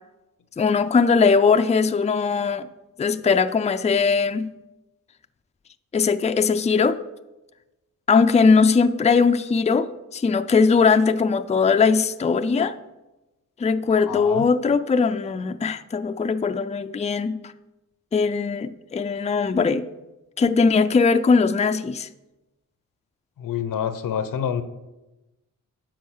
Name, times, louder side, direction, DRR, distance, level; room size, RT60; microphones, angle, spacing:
voice 1, 0.6-2.7 3.0-4.5 5.9-7.0 8.1-12.8 13.6-17.5 18.1-19.9 20.4-22.1, left 5 dB, 20° left, 9 dB, 0.5 m, -20 dB
voice 2, 14.1-14.5 23.4-24.6, left 8 dB, 85° left, 11 dB, 0.9 m, -27 dB
10.5 x 6.4 x 6.5 m, 1.0 s
cardioid pair, 100°, 32 cm